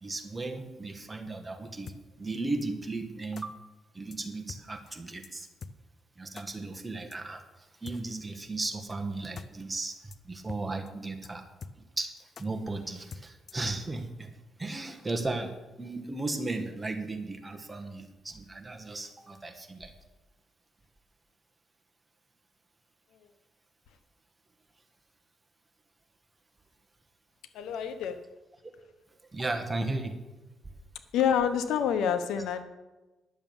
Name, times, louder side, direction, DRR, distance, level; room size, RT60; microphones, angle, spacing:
voice 1, 0.0-1.9 2.2-3.5 3.9-5.5 6.2-11.5 11.7-14.3 14.6-19.9 29.3-30.2, right 2 dB, 20° right, 5 dB, 1.5 m, -36 dB
sound 1, 1.9-2.0 2.6-2.7 3.4-3.5 4.1-4.2 4.5-4.6 4.9-5.0 5.2-5.3 5.6-5.7 6.4-6.5 7.1-7.2 7.9-8.0 8.6-8.7 9.0-9.1 9.4-9.5 9.7-9.8 10.1-10.2 10.5-10.6 10.9-11.0 11.2-11.3 11.6-12.0 12.4-12.5 13.1-13.7, left 5 dB, 50° left, 0.6 m, -44 dB
voice 2, 27.5-28.2 31.1-32.6, left 8 dB, 85° left, 10 dB, 0.9 m, -27 dB
11.0 x 7.2 x 7.1 m, 1.1 s
cardioid pair, 90°, 0 cm